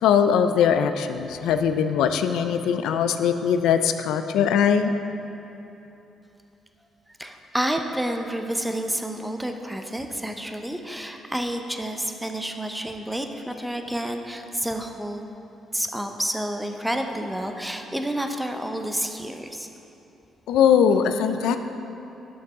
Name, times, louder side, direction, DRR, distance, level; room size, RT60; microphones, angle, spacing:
voice 1, 0.0-4.9 20.5-21.6, left 8 dB, 85° left, 9 dB, 0.3 m, -21 dB
voice 2, 7.1-15.3 15.7-19.7, right 1 dB, 5° right, 5 dB, 0.6 m, -29 dB
7.2 x 5.9 x 4.9 m, 2.9 s
cardioid pair, 90°, 0 cm